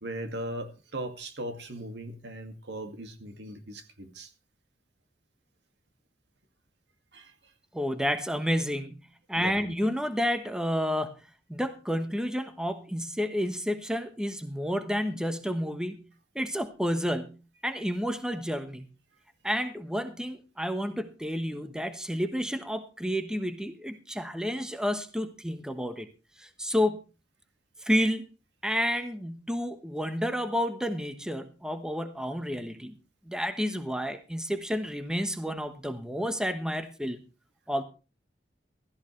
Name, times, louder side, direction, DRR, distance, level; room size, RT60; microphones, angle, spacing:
voice 1, 0.0-4.3 7.1-7.3 9.4-9.5, right 1 dB, 80° right, 7 dB, 2.2 m, -38 dB
voice 2, 7.7-11.2 11.5-16.1 16.3-18.9 19.4-26.1 26.4-27.0 27.8-28.3 28.6-32.9 33.2-37.2 37.7-37.8, equal, 5° right, 8 dB, 1.1 m, -30 dB
16.0 x 14.0 x 3.2 m, 0.31 s
head